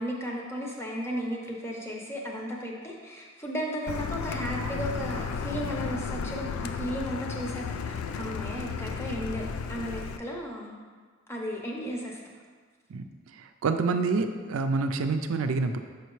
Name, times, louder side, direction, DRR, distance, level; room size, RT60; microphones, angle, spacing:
voice 1, 0.0-10.8 11.3-12.2, equal, 15° left, -1 dB, 0.7 m, -35 dB
Car, 3.9-10.2, left 5 dB, 85° left, 0.3 m, -34 dB
voice 2, 13.4-15.8, right 4 dB, 85° right, 7 dB, 0.4 m, -27 dB
6.7 x 5.0 x 3.1 m, 1.6 s
head